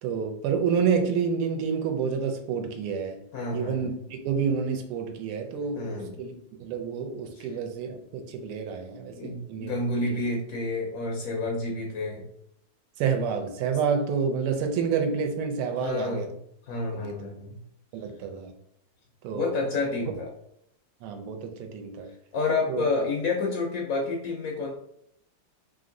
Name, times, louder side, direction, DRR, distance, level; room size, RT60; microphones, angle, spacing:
voice 1, 0.0-3.2 3.5-6.3 6.6-9.7 10.1-10.2 13.0-16.3 16.9-17.2 17.9-18.5 19.2-19.6 20.0-20.1 21.0-22.1 22.7-22.9, right 6 dB, 90° right, 5 dB, 1.5 m, -29 dB
voice 2, 3.3-3.9 5.7-6.2 7.4-7.5 9.2-12.3 13.7-13.8 15.8-16.3 16.7-17.6 19.3-20.3 22.3-24.7, left 3 dB, 85° left, -1 dB, 0.7 m, -29 dB
3.6 x 2.6 x 3.8 m, 0.74 s
omnidirectional pair, 2.3 m